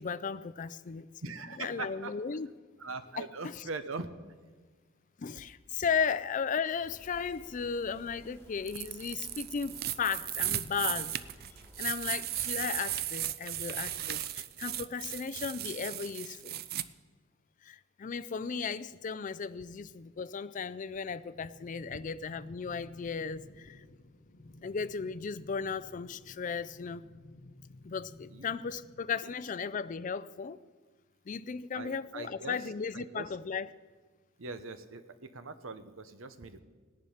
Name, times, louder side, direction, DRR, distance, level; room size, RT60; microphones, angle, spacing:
voice 1, 0.0-1.1 1.6-2.5 3.2-3.5 5.2-11.1 11.8-16.6 17.6-23.8 24.6-27.0 27.8-30.6 31.3-33.7, left 6 dB, 40° left, 16 dB, 0.4 m, -35 dB
voice 2, 1.2-2.2 2.8-4.1 15.0-15.1 28.3-28.7 29.2-29.3 31.7-33.3 34.4-36.6, right 3 dB, 75° right, 11 dB, 0.9 m, -42 dB
sound 1, 6.8-11.9, left 1 dB, 10° left, 1.6 m, -56 dB
sound 2, 8.7-16.8, right 13 dB, 50° right, 0.4 m, -36 dB
sound 3, 21.2-29.2, left 2 dB, 55° left, 0.9 m, -54 dB
17.0 x 10.5 x 5.7 m, 1.4 s
head